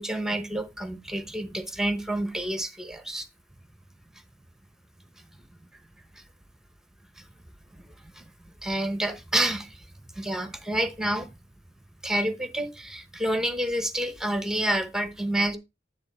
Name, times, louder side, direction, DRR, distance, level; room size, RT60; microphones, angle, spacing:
voice 1, 0.0-3.3 7.7-7.8 8.2-8.3 8.6-9.8 10.2-11.3 12.0-15.6, right 1 dB, 5° right, 1.0 m, -28 dB
9.7 x 3.9 x 4.3 m
head